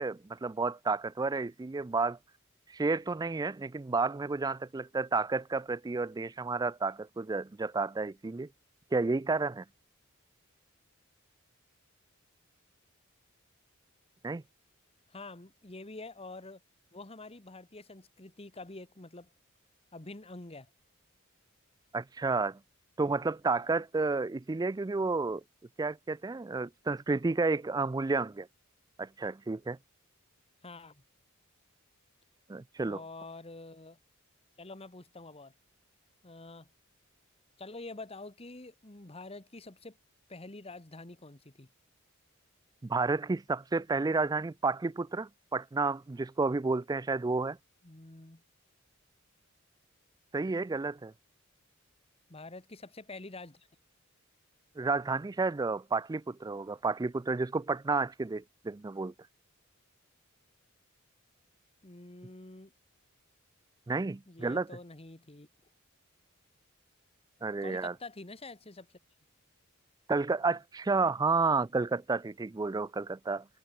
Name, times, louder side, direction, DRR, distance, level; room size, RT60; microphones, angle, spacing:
voice 1, 0.0-2.2 2.7-8.5 8.9-9.6 14.2-14.4 21.9-22.6 23.0-25.4 25.8-28.5 29.0-29.8 32.5-33.0 42.8-47.6 50.3-51.1 54.8-59.1 63.9-64.7 67.4-67.9 70.1-73.4, right 3 dB, 20° right, 0.4 m, -31 dB
voice 2, 15.1-16.6 16.9-19.3 19.9-20.7 30.6-31.0 32.8-34.0 34.6-35.5 36.2-36.7 37.6-40.0 40.3-41.7 47.8-48.4 52.3-53.7 61.8-62.7 64.3-65.5 67.6-68.9, left 2 dB, 30° left, 1.6 m, -47 dB
head